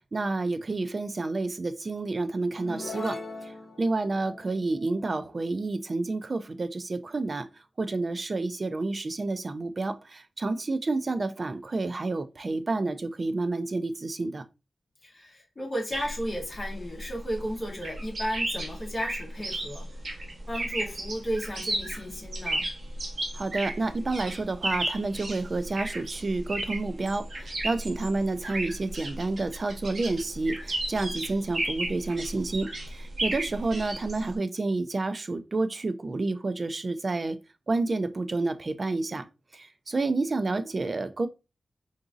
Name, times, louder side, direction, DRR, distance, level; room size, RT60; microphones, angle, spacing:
voice 1, 0.1-14.4 23.3-37.4 37.7-39.3 39.5-41.3, right 3 dB, 40° right, 0.3 m, -29 dB
sound 1, 2.6-6.2, left 3 dB, 55° left, 0.7 m, -41 dB
voice 2, 15.0-20.2 20.5-22.7, equal, 25° left, 1.1 m, -34 dB
sound 2, 15.9-34.4, right 1 dB, 60° right, 0.9 m, -34 dB
3.8 x 2.6 x 2.4 m
wide cardioid pair, 135°, 0 cm